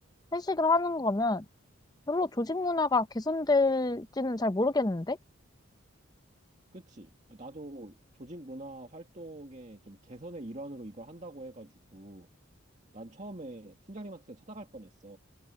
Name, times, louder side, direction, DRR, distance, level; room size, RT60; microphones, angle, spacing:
voice 1, 0.3-1.4 2.1-5.2, left 3 dB, 20° left, 0.6 m, -27 dB
voice 2, 6.7-12.3 12.9-15.2, right 1 dB, 35° right, 2.1 m, -44 dB
head